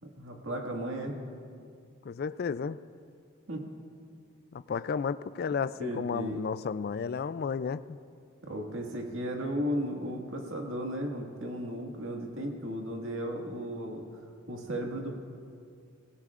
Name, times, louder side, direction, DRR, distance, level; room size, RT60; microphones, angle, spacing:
voice 1, 0.0-1.2 3.5-3.6 5.8-6.6 8.4-14.0 14.5-15.2, equal, 65° right, 1 dB, 1.9 m, -35 dB
voice 2, 2.0-2.8 4.5-8.0, left 6 dB, 45° left, 15 dB, 0.3 m, -33 dB
23.5 x 16.5 x 2.5 m, 2.3 s
head